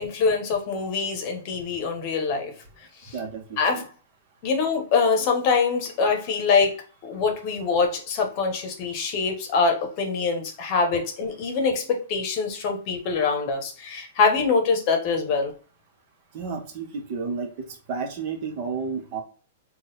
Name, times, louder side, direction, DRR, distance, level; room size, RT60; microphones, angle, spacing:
voice 1, 0.0-2.5 3.0-3.1 3.6-3.8 4.4-15.5, left 4 dB, 35° left, 3 dB, 1.0 m, -24 dB
voice 2, 3.1-3.8 16.3-19.2, right 5 dB, 40° right, 3 dB, 1.0 m, -32 dB
3.8 x 2.4 x 3.9 m, 0.38 s
hypercardioid pair, 160°, 0 cm